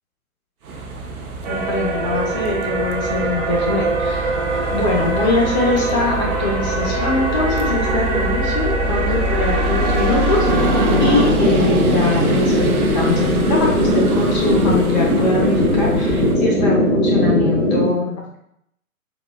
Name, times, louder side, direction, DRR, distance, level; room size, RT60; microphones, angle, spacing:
sound 1, 0.6-16.4, right 1 dB, 85° right, 0.6 m, -25 dB
sound 2, 1.4-11.3, right 3 dB, 30° right, 0.5 m, -24 dB
voice 1, 1.5-4.4 4.7-10.7 11.0-18.4, left 3 dB, 30° left, -2 dB, 0.8 m, -22 dB
sound 3, 10.4-17.8, left 1 dB, 10° left, 1.1 m, -18 dB
3.9 x 2.3 x 2.2 m, 0.73 s
figure-of-eight pair, 120°, 42 cm